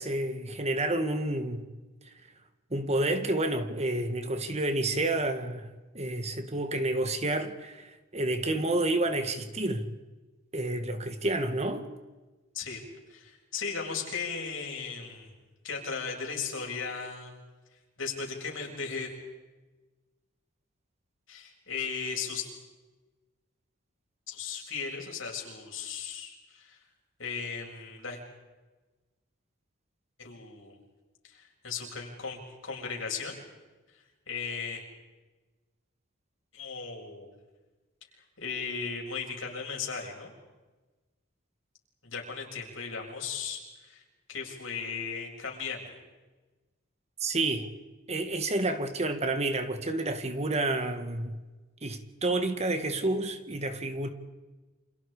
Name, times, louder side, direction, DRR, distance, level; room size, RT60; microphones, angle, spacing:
voice 1, 0.0-1.7 2.7-5.7 5.9-9.9 10.5-11.9 47.2-47.7 48.1-51.4 51.8-54.1, right 2 dB, 35° right, 2.0 m, -29 dB
voice 2, 13.1-15.3 15.6-17.4 18.0-19.1 21.3-22.4 24.3-26.8 27.2-28.2 30.2-30.8 31.2-33.4 34.3-34.8 36.5-37.3 38.4-40.3 42.0-44.0 44.3-46.0, left 5 dB, 70° left, 7.2 m, -36 dB
30.0 x 27.5 x 5.1 m
head